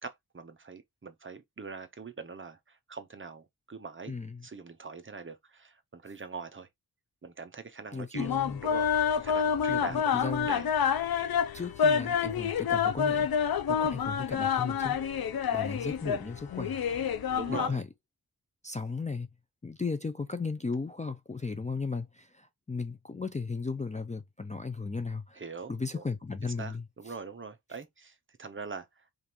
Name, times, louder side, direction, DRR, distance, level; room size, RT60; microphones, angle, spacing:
voice 1, 0.0-6.7 7.2-8.3 8.6-10.7 13.7-14.0 17.3-17.8 25.3-26.0 26.4-29.1, right 4 dB, 30° right, 0.7 m, -43 dB
voice 2, 4.1-4.5 7.9-8.6 9.7-10.5 11.5-13.3 13.7-16.7 17.5-17.8 18.6-19.3 19.6-25.4 25.7-27.1, left 4 dB, 20° left, 0.4 m, -36 dB
sound 1, 8.2-17.7, left 7 dB, 65° left, 0.6 m, -28 dB
5.1 x 2.5 x 2.9 m
wide cardioid pair, 110°, 39 cm